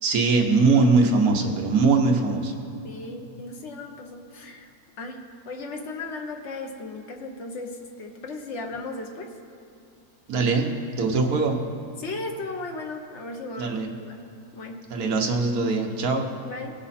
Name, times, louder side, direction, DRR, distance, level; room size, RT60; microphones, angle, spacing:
voice 1, 0.0-2.6 10.3-10.7 11.0-11.6 13.6-13.9 14.9-16.3, right 3 dB, 60° right, 2 dB, 1.4 m, -21 dB
voice 2, 2.8-4.7 5.0-9.3 12.0-14.2 14.5-14.8 16.1-16.7, left 3 dB, 50° left, 2 dB, 1.1 m, -36 dB
18.0 x 6.2 x 4.2 m, 2.7 s
omnidirectional pair, 1.9 m